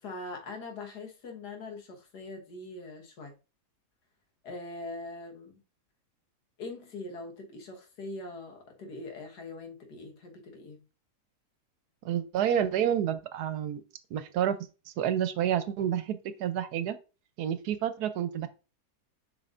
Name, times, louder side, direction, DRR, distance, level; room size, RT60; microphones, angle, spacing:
voice 1, 0.0-3.3 4.4-5.6 6.6-10.8, left 2 dB, 85° left, 2.0 m, -42 dB
voice 2, 12.0-13.8 14.1-14.6 15.0-17.0 17.4-18.5, right 10 dB, 80° right, 1.3 m, -29 dB
7.6 x 5.7 x 2.5 m
omnidirectional pair, 1.7 m